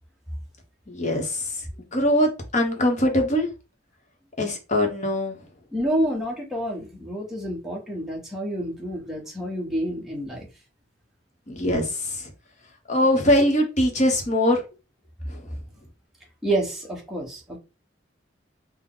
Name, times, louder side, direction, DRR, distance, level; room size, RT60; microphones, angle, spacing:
voice 1, 0.9-1.5 1.9-3.5 4.4-5.4 11.5-12.3 12.9-14.6 15.3-15.4, left 1 dB, 40° left, 0.9 m, -22 dB
voice 2, 5.7-10.5 16.4-17.6, right 1 dB, ahead, 0.9 m, -28 dB
3.8 x 2.1 x 3.8 m
head